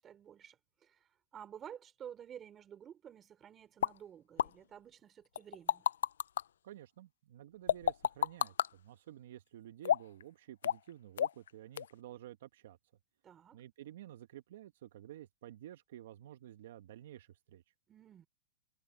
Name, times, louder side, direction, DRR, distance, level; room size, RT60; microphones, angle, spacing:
voice 1, 0.0-5.9 13.2-13.6 17.9-18.3, right 9 dB, 20° right, 4.9 m, -52 dB
sound 1, 3.8-3.9 4.4-4.5 5.4-6.4 7.7-8.7 9.8-10.2 10.6-10.9 11.2-11.5 11.8-11.9, left 9 dB, 85° left, 0.3 m, -30 dB
voice 2, 6.6-12.8 13.5-17.7, right 12 dB, 65° right, 1.3 m, -52 dB
hypercardioid pair, 140°, 0 cm